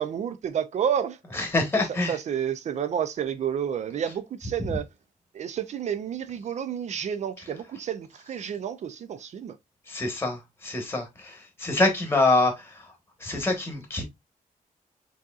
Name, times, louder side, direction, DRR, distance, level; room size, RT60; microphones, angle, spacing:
voice 1, 0.0-1.2 2.1-4.9 5.3-9.6, right 8 dB, 50° right, 0.4 m, -30 dB
voice 2, 1.3-2.2 9.9-12.9 13.2-14.0, left 2 dB, 15° left, 1.2 m, -26 dB
6.1 x 2.8 x 2.4 m
wide cardioid pair, 170°, 15 cm